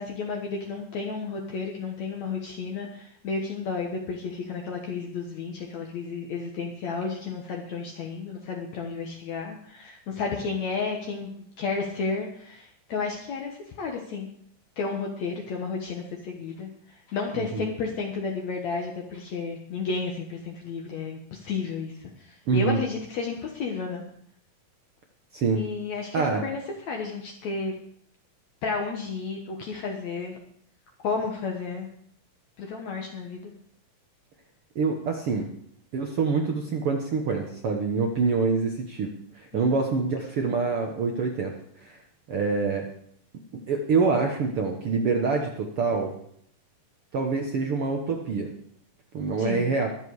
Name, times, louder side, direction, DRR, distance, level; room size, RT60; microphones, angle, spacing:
voice 1, 0.0-14.3 14.8-24.0 25.5-27.7 28.6-30.4 31.0-31.9 32.6-33.5 39.5-39.8 49.4-49.7, left 4 dB, 60° left, 1 dB, 2.4 m, -32 dB
voice 2, 22.5-22.8 25.3-25.6 26.1-26.4 34.7-35.5 35.9-39.1 39.3-42.0 42.3-42.9 43.7-46.1 47.1-48.5 49.1-49.9, right 4 dB, 60° right, 2 dB, 1.6 m, -26 dB
22.5 x 7.7 x 4.8 m, 0.67 s
omnidirectional pair, 4.0 m